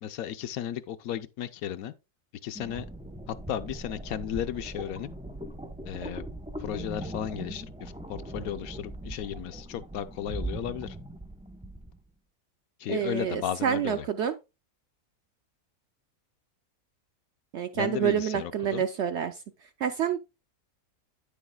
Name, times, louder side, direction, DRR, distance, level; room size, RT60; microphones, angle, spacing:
voice 1, 0.0-1.9 2.4-2.9 3.3-5.1 5.8-6.2 6.6-11.0 12.8-14.1 17.7-18.9, left 10 dB, 75° left, 1.0 m, -34 dB
sound 1, 2.5-12.0, right 1 dB, 5° right, 0.5 m, -40 dB
voice 2, 12.9-14.3 17.5-19.4 19.8-20.2, right 9 dB, 70° right, 0.7 m, -28 dB
9.1 x 7.1 x 2.2 m
omnidirectional pair, 1.6 m